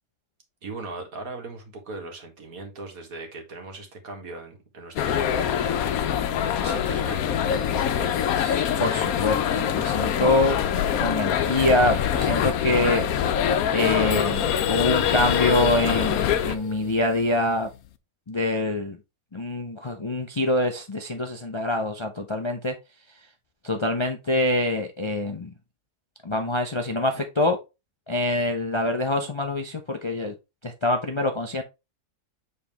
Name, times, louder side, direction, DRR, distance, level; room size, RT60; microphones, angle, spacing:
voice 1, 0.6-8.6, right 3 dB, 75° right, 2.0 m, -39 dB
sound 1, 5.0-16.6, left 9 dB, 85° left, 1.1 m, -24 dB
voice 2, 8.4-10.6 10.9-13.1 13.7-17.7 18.3-19.0 19.3-22.7 23.6-25.5 26.2-27.6 28.1-30.3 30.6-31.6, left 1 dB, 35° left, 0.4 m, -25 dB
sound 2, 13.2-13.3 13.5-17.9, left 11 dB, 65° left, 0.8 m, -30 dB
7.1 x 4.0 x 3.5 m
omnidirectional pair, 1.5 m